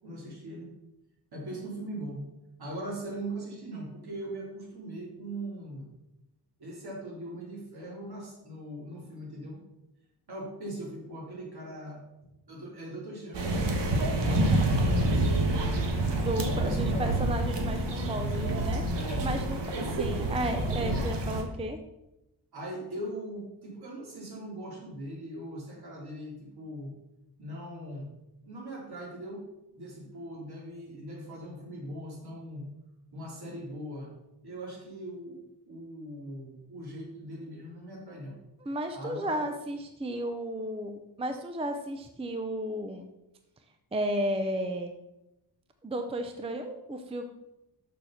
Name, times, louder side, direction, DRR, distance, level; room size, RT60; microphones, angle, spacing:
voice 1, 0.0-0.7 1.3-2.3 2.6-5.9 6.6-9.6 10.3-12.0 12.5-15.6 16.3-17.2 17.8-18.4 18.9-19.3 22.5-26.9 27.4-28.1 28.4-29.4 29.7-32.7 33.1-34.1 34.4-38.4 38.9-39.4, right 1 dB, 60° right, -3 dB, 3.3 m, -40 dB
sound 1, 13.3-21.4, right 1 dB, 80° right, 1.5 m, -27 dB
voice 2, 16.1-18.8 19.2-19.6 19.9-21.8 38.6-43.1 43.9-45.0 45.8-47.2, right 1 dB, 15° right, 6 dB, 0.5 m, -33 dB
6.7 x 6.5 x 5.7 m, 0.92 s
wide cardioid pair, 170°, 42 cm